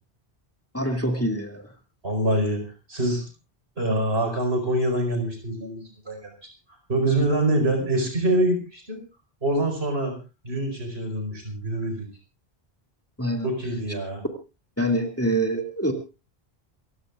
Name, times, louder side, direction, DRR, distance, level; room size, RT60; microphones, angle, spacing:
voice 1, 0.7-1.7 13.2-13.5 14.8-15.9, right 1 dB, 15° left, 3 dB, 2.4 m, -25 dB
voice 2, 2.0-2.6 2.9-3.2 3.8-6.3 6.9-9.0 9.4-10.2 10.4-12.1 13.4-14.2, right 1 dB, 80° right, 4 dB, 5.2 m, -25 dB
27.5 x 15.5 x 2.5 m, 0.30 s
omnidirectional pair, 1.0 m